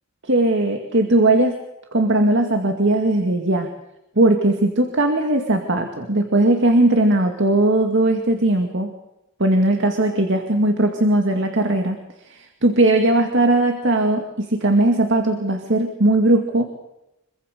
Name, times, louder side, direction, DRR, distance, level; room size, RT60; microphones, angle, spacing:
voice 1, 0.3-1.5 1.9-3.7 4.2-8.9 9.4-12.0 12.3-16.6, right 2 dB, 60° right, 5 dB, 2.2 m, -18 dB
25.5 x 24.0 x 6.7 m, 0.91 s
head